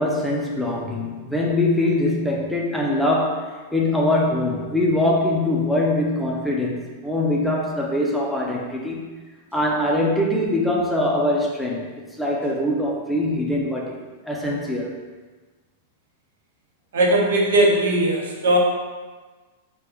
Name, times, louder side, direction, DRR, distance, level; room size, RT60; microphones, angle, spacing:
voice 1, 0.0-9.1 9.5-11.9 12.2-14.0 14.2-15.0, left 1 dB, 5° left, -3 dB, 0.4 m, -23 dB
voice 2, 16.9-18.6, right 1 dB, 85° right, -1 dB, 0.7 m, -18 dB
3.3 x 2.1 x 3.4 m, 1.3 s
hypercardioid pair, 135°, 0 cm